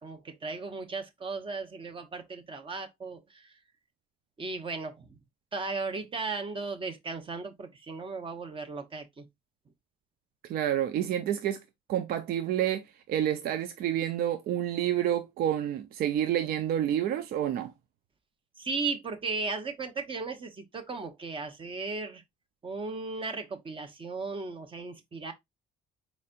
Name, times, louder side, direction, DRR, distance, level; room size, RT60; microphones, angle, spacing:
voice 1, 0.0-3.5 4.4-5.1 5.5-9.3 18.6-22.2 22.6-25.3, right 4 dB, 30° right, 0.8 m, -36 dB
voice 2, 10.5-11.6 11.9-17.7, right 11 dB, 65° right, 0.5 m, -29 dB
4.3 x 4.1 x 2.4 m
cardioid pair, 110°, 17 cm